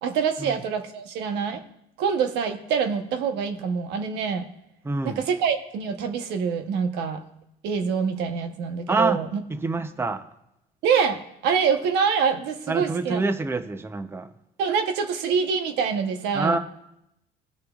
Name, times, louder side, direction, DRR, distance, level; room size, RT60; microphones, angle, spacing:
voice 1, 0.0-1.6 2.0-4.5 5.0-7.2 7.6-9.4 10.8-13.2 14.6-16.6, right 6 dB, 90° right, 1.0 m, -25 dB
voice 2, 4.8-5.2 8.9-9.2 9.5-10.2 12.7-14.3 16.3-16.6, right 3 dB, 15° right, 0.6 m, -26 dB
19.5 x 6.7 x 2.4 m
cardioid pair, 110°, 17 cm